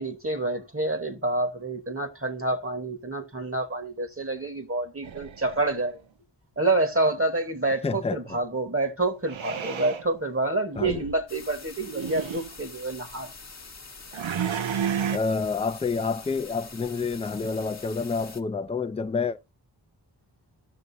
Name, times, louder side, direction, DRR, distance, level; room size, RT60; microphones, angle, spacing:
voice 1, 0.0-6.0 6.6-13.3, right 2 dB, 30° right, 1.1 m, -28 dB
sound 1, 5.0-5.9 9.3-10.0 10.7-11.2 11.8-12.5 14.1-15.2, right 8 dB, 85° right, 0.7 m, -31 dB
voice 2, 7.8-8.4 10.8-11.0 15.1-19.4, left 4 dB, 15° left, 0.4 m, -28 dB
sound 2, 11.3-18.4, left 4 dB, 35° left, 0.9 m, -45 dB
15.5 x 6.5 x 2.6 m
wide cardioid pair, 70°, 46 cm